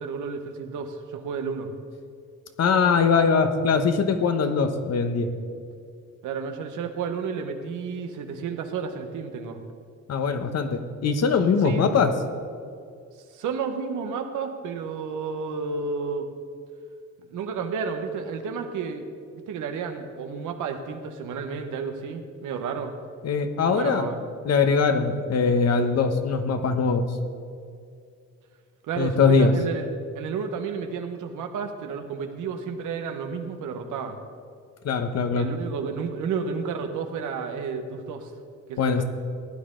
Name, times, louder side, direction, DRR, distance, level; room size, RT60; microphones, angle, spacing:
voice 1, 0.0-1.7 6.2-9.6 11.6-12.0 13.3-16.3 17.3-19.1 19.5-22.9 23.7-24.2 28.9-29.9 30.1-34.2 35.3-38.3 38.7-39.0, right 5 dB, 80° right, 6 dB, 1.2 m, -31 dB
voice 2, 2.6-5.3 10.1-12.1 23.2-24.1 24.4-27.1 29.0-29.5 34.8-35.5 38.8-39.0, left 5 dB, 55° left, 8 dB, 1.1 m, -22 dB
15.5 x 9.7 x 3.8 m, 2.4 s
cardioid pair, 90°, 30 cm